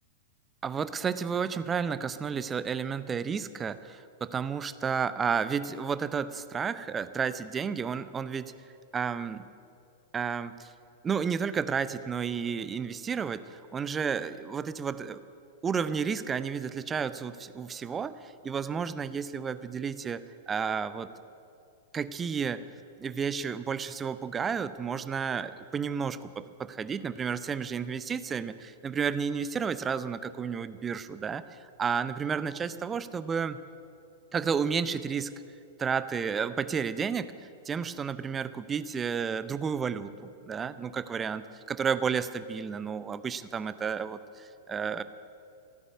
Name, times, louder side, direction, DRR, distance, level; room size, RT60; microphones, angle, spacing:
voice 1, 0.6-8.5 8.9-9.5 10.1-10.7 11.0-15.2 15.6-21.1 21.9-22.7 23.0-33.6 34.3-35.3 35.8-45.0, right 6 dB, 20° right, 14 dB, 0.6 m, -32 dB
15.0 x 9.1 x 9.7 m, 2.6 s
figure-of-eight pair, 100°, 0 cm